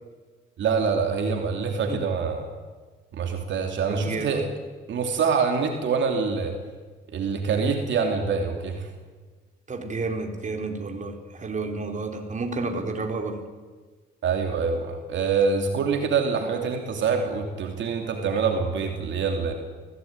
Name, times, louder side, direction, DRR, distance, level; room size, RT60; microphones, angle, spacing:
voice 1, 0.6-2.5 3.1-4.4 4.9-6.6 7.1-8.9 14.2-19.5, right 5 dB, 70° right, 3 dB, 3.0 m, -25 dB
voice 2, 3.9-4.4 9.7-13.4, right 3 dB, 40° right, 4 dB, 4.1 m, -31 dB
24.0 x 17.0 x 9.7 m, 1.4 s
cardioid pair, 90°, 20 cm